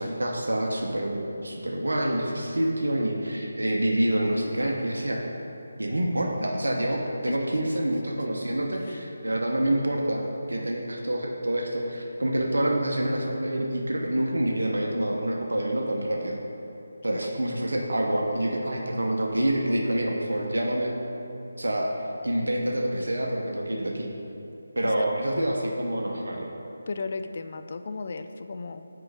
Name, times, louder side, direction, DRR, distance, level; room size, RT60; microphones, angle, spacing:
voice 1, 0.0-5.2 5.8-16.4 17.0-20.9 21.6-21.9 22.2-24.1 24.8-26.5, right 1 dB, 75° right, 0 dB, 0.8 m, -27 dB
voice 2, 26.9-28.9, left 4 dB, 45° left, 9 dB, 0.3 m, -35 dB
6.2 x 4.7 x 4.8 m, 2.8 s
figure-of-eight pair, 155°, 0 cm